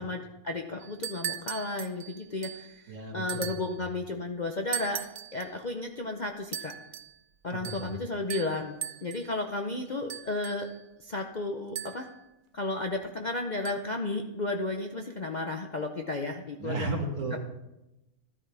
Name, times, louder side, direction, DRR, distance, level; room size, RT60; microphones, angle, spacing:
voice 1, 0.0-5.0 5.3-6.7 7.4-10.7 11.0-12.1 12.5-16.9 17.3-17.4, left 2 dB, 40° left, 4 dB, 0.7 m, -33 dB
sound 1, 0.8-2.7 3.3-3.8 4.7-5.5 6.5-7.2 7.6-8.0 8.3-9.3 10.1-10.8 11.8-12.2 13.7-13.8, right 10 dB, 90° right, 0.4 m, -38 dB
voice 2, 2.9-3.5 7.5-7.9 16.6-17.4, right 3 dB, 55° right, 1 dB, 2.2 m, -34 dB
14.0 x 12.0 x 3.4 m, 0.93 s
omnidirectional pair, 1.6 m